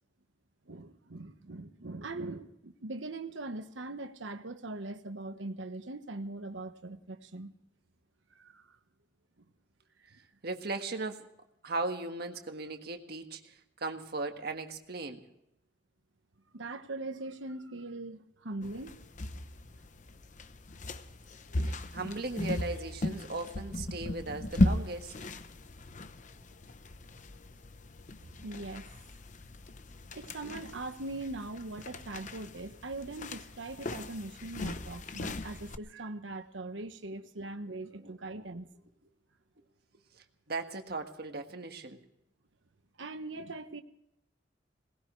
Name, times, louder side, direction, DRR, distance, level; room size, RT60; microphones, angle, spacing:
voice 1, 0.7-7.5 8.3-8.8 10.0-10.3 16.5-19.0 21.5-21.7 28.2-28.9 30.1-38.7 43.0-43.8, right 2 dB, 80° right, 9 dB, 1.2 m, -41 dB
voice 2, 10.4-11.3 11.6-15.3 21.6-25.1 38.0-38.2 40.5-42.0, right 3 dB, 55° right, 5 dB, 1.6 m, -37 dB
sound 1, 18.6-35.8, left 1 dB, 40° left, 0.8 m, -37 dB
22.0 x 19.0 x 3.2 m, 0.83 s
head